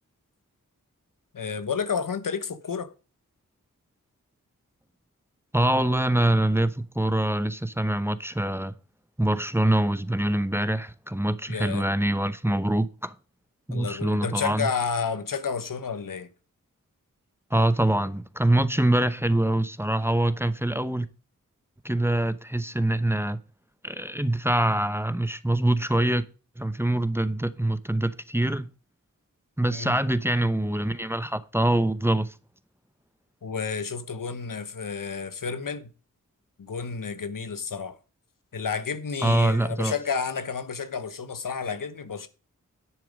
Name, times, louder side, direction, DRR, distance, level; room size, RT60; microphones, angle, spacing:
voice 1, 1.3-2.9 11.5-11.9 13.7-16.3 29.7-30.0 33.4-35.9 36.6-38.0 38.5-42.3, left 6 dB, 80° left, 1.2 m, -31 dB
voice 2, 5.5-8.7 9.2-13.1 13.7-14.7 17.5-21.1 21.8-23.4 23.8-26.2 26.6-28.7 29.6-32.3 39.2-39.9, right 1 dB, 5° right, 0.8 m, -24 dB
10.5 x 6.9 x 5.2 m
cardioid pair, 45°, 32 cm